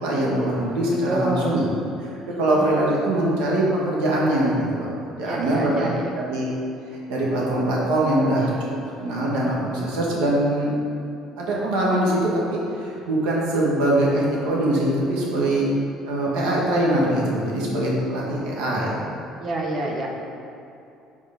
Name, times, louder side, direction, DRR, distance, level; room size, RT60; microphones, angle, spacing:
voice 1, 0.0-1.7 2.4-5.9 6.3-6.5 7.1-8.5 9.0-10.7 11.4-15.6 16.0-19.0, right 1 dB, 90° right, -4 dB, 1.4 m, -22 dB
voice 2, 0.9-1.7 2.3-2.7 5.2-6.1 19.4-20.1, right 2 dB, 40° right, 0 dB, 1.0 m, -28 dB
6.2 x 3.7 x 5.1 m, 2.7 s
cardioid pair, 130°, 0 cm